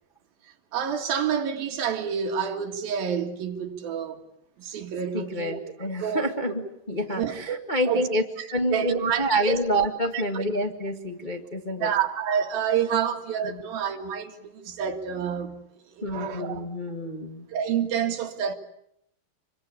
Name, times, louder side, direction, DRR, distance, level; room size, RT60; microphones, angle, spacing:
voice 1, 0.7-4.2 4.6-5.6 6.0-6.3 7.1-7.6 7.9-8.1 8.4-9.6 10.1-10.4 11.8-15.6 16.0-16.6 17.5-18.6, right 8 dB, 75° right, 3.8 m, -28 dB
voice 2, 5.1-8.2 8.5-11.9 13.5-13.6 16.0-17.5, equal, 30° left, 0.8 m, -28 dB
26.5 x 24.0 x 8.7 m
omnidirectional pair, 4.3 m